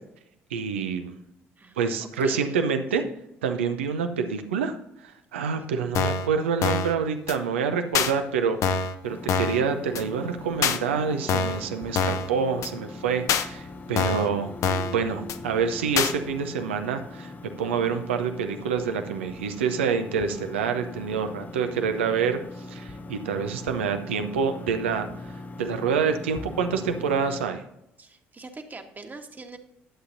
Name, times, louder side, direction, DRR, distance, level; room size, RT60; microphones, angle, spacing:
voice 1, 0.5-1.1 1.8-3.0 3.4-4.7 5.0-8.6 9.0-14.5 14.9-17.3 17.6-22.4 22.7-25.1 25.6-27.6, right 6 dB, 85° right, 7 dB, 0.7 m, -27 dB
voice 2, 1.6-2.5 5.5-5.6 28.0-29.6, right 3 dB, 30° right, 4 dB, 1.4 m, -43 dB
sound 1, 5.9-6.3 6.6-6.9 7.3-7.4 7.9-8.1 8.6-8.9 9.3-9.6 9.9-10.0 10.6-10.8 11.3-11.6 11.9-12.3 12.6-12.7 13.3-13.5 14.0-14.3 14.6-14.9 15.3-15.4 16.0-16.1, left 5 dB, 60° left, 0.7 m, -24 dB
sound 2, 9.0-27.4, left 2 dB, 25° left, 0.7 m, -41 dB
11.5 x 8.1 x 2.6 m, 0.79 s
hypercardioid pair, 55°, 6 cm